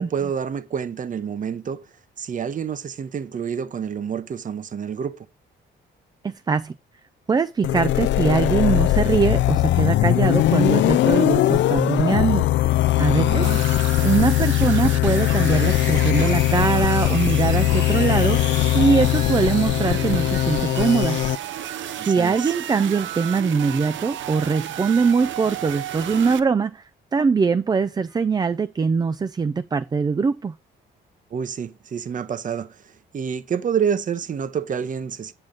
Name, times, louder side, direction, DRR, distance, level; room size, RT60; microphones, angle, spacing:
voice 1, 0.0-1.8 2.2-5.3 13.2-13.6 22.0-22.5 31.3-35.3, right 7 dB, 40° right, 0.8 m, -28 dB
voice 2, 6.2-6.7 7.3-12.4 13.0-13.5 14.0-21.2 22.0-26.8 27.1-30.6, right 5 dB, 20° right, 0.3 m, -22 dB
sound 1, 7.6-21.4, left 14 dB, 70° left, 0.4 m, -20 dB
sound 2, 13.4-26.4, right 10 dB, 75° right, 0.7 m, -33 dB
8.8 x 6.2 x 3.9 m
cardioid pair, 90°, 20 cm